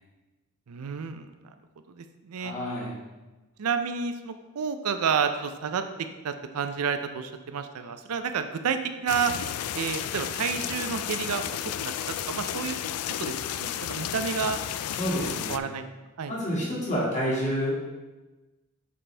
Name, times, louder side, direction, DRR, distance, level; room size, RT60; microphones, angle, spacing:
voice 1, 0.7-1.5 1.9-2.5 3.6-9.3 9.7-12.8 13.2-14.6 15.5-15.8 16.2-16.3, right 6 dB, 90° right, 8 dB, 0.5 m, -30 dB
voice 2, 2.4-2.9 14.9-15.6 16.3-17.7, equal, 35° left, -6 dB, 2.0 m, -29 dB
sound 1, 9.1-15.6, left 10 dB, 90° left, 0.3 m, -32 dB
7.5 x 4.3 x 3.3 m, 1.1 s
head